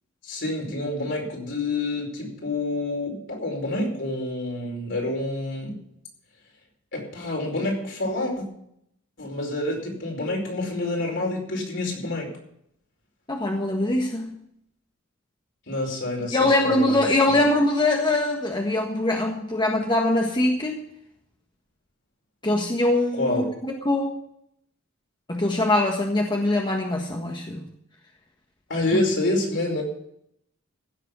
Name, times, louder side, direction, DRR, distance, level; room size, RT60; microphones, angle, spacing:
voice 1, 0.2-5.7 6.9-8.5 9.2-12.3 15.7-17.4 23.1-23.4 28.7-29.8, left 2 dB, 60° left, 0 dB, 5.0 m, -28 dB
voice 2, 13.3-14.3 16.3-20.8 22.4-24.1 25.3-27.6 28.9-29.0, left 2 dB, 25° left, 0 dB, 1.5 m, -23 dB
16.0 x 7.4 x 7.1 m, 0.72 s
head